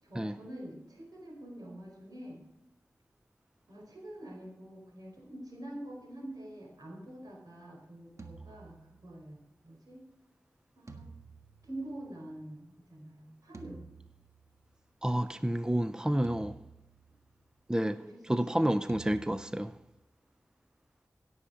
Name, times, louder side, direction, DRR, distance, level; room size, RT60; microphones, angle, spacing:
voice 1, 0.0-2.4 3.7-10.0 10.7-11.1 11.6-13.8 17.8-18.5, right 1 dB, 85° right, 4.6 m, -46 dB
sound 1, 8.2-9.4 10.9-12.4 13.5-14.7 16.2-17.5 18.9-20.0, right 4 dB, 50° right, 1.5 m, -51 dB
voice 2, 15.0-16.5 17.7-18.0 18.3-19.7, right 1 dB, 10° right, 0.6 m, -29 dB
17.0 x 7.1 x 5.2 m
wide cardioid pair, 55°, 6 cm